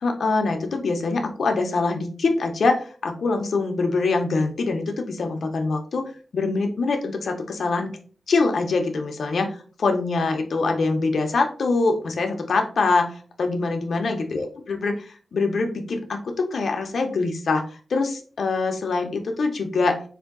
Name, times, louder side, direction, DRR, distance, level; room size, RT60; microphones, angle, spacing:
voice 1, 0.0-6.0 6.3-7.9 8.3-17.6 17.9-20.0, left 3 dB, 75° left, 4 dB, 0.7 m, -24 dB
4.3 x 2.6 x 3.7 m, 0.39 s
wide cardioid pair, 115°, 0 cm